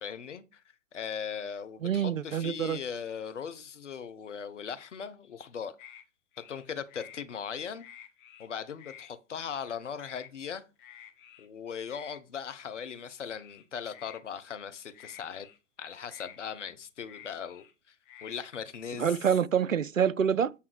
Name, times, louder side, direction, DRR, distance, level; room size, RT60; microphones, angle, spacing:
voice 1, 0.0-0.6 0.9-5.7 6.5-7.9 8.4-10.7 11.4-15.5 15.8-17.9 18.2-19.2, left 7 dB, 65° left, 1.1 m, -39 dB
voice 2, 1.8-2.8 19.0-20.5, right 8 dB, 90° right, 0.6 m, -26 dB
sound 1, 5.8-6.0 6.3-7.2 7.6-8.5 8.8-9.1 9.4-9.7 10.0-10.3 10.8-11.5 11.9-12.2 13.3-14.2 14.9-15.6 16.1-17.7 18.0-18.4, left 10 dB, 40° left, 1.4 m, -51 dB
8.5 x 3.6 x 4.7 m
figure-of-eight pair, 115°, 38 cm